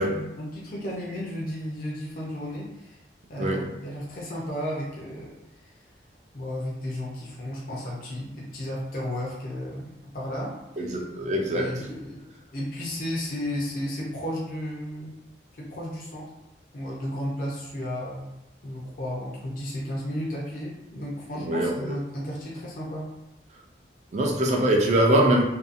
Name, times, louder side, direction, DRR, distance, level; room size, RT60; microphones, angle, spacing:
voice 1, 0.0-3.0 3.3-5.4 6.3-10.9 11.5-12.3 12.5-15.2 15.5-16.3 16.7-18.3 18.6-23.1, equal, 50° left, -4 dB, 0.5 m, -33 dB
voice 2, 3.4-3.7 10.8-11.8 21.4-21.9 24.1-25.4, right 1 dB, 40° right, 0 dB, 0.4 m, -23 dB
2.6 x 2.3 x 2.4 m, 0.91 s
head